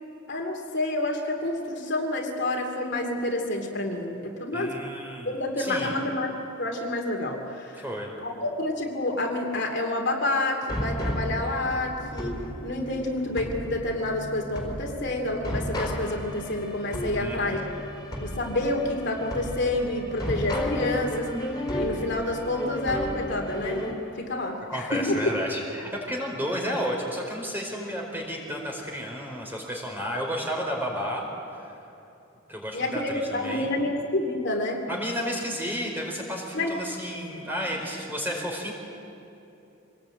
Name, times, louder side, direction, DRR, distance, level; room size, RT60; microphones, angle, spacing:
voice 1, 0.3-4.8 5.2-7.8 8.2-12.3 12.6-17.7 18.2-21.3 21.8-23.8 24.2-25.2 32.7-34.9 36.5-36.8 37.6-37.7, left 2 dB, 55° left, 2 dB, 2.7 m, -28 dB
voice 2, 4.5-5.9 7.8-8.1 17.1-17.6 24.7-31.7 32.5-33.7 34.9-38.7, equal, 10° right, -1 dB, 4.7 m, -32 dB
sound 1, 10.7-23.9, left 1 dB, 20° left, 4.3 m, -33 dB
25.5 x 20.0 x 8.8 m, 2.8 s
head